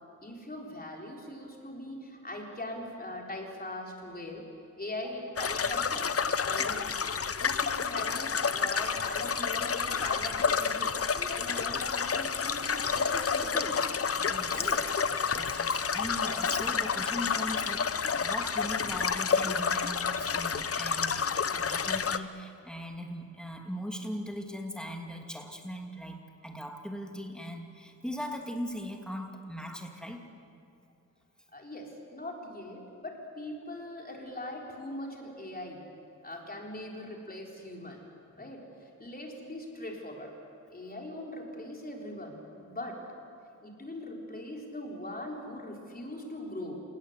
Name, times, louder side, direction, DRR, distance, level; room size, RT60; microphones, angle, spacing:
voice 1, 0.2-4.4 4.8-6.1 6.4-13.8 14.5-14.8 31.5-35.8 36.2-38.0 38.4-40.3 40.7-43.0 43.6-46.8, left 1 dB, 30° left, 0 dB, 4.0 m, -41 dB
sound 1, 5.4-22.2, left 6 dB, 45° left, 0.7 m, -29 dB
voice 2, 14.2-14.6 15.3-30.2 38.3-38.5, equal, 5° left, 3 dB, 2.4 m, -39 dB
28.0 x 19.0 x 8.2 m, 2.5 s
wide cardioid pair, 120°, 31 cm